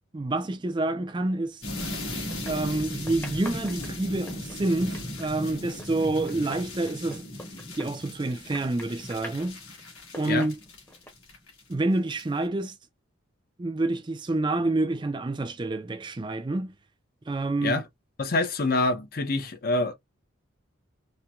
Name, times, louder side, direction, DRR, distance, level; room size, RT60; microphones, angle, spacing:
voice 1, 0.1-1.6 2.5-7.3 7.7-9.6 10.2-10.5 11.7-12.8 13.6-16.7 17.3-17.8, right 2 dB, 25° right, 0.4 m, -28 dB
sound 1, 1.6-11.7 12.1-12.4, left 1 dB, 85° left, 1.7 m, -37 dB
sound 2, 1.8-2.8 3.1-8.2 8.5-9.5 10.0-11.1, equal, 10° left, 0.7 m, -44 dB
voice 2, 18.2-19.9, left 2 dB, 45° left, 0.6 m, -26 dB
4.3 x 2.2 x 2.3 m
head